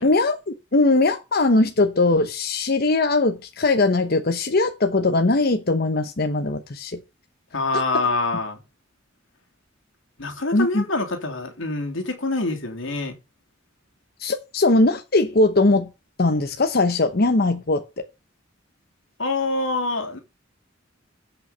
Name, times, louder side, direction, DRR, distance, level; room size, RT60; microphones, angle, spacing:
voice 1, 0.0-7.0 10.5-10.8 14.2-15.9 16.2-17.8, left 2 dB, 50° left, 0.9 m, -20 dB
voice 2, 7.5-8.6 10.2-13.2 19.2-20.2, left 2 dB, 85° left, 2.8 m, -25 dB
15.5 x 5.7 x 5.6 m
head